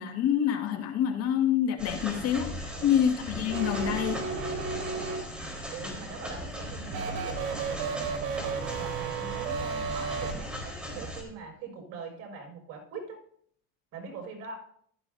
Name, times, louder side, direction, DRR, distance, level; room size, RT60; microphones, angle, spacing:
voice 1, 0.0-4.3 5.8-6.0, left 9 dB, 55° left, 3 dB, 2.1 m, -27 dB
sound 1, 1.8-11.2, equal, 5° right, 4.2 m, -38 dB
voice 2, 2.7-3.0 5.7-8.0 8.3-13.2 13.9-14.5, right 4 dB, 60° right, 1 dB, 6.3 m, -42 dB
sound 2, 3.4-5.6 6.9-10.3, right 5 dB, 80° right, 2.9 m, -34 dB
15.0 x 13.5 x 2.8 m, 0.65 s
cardioid pair, 130°, 30 cm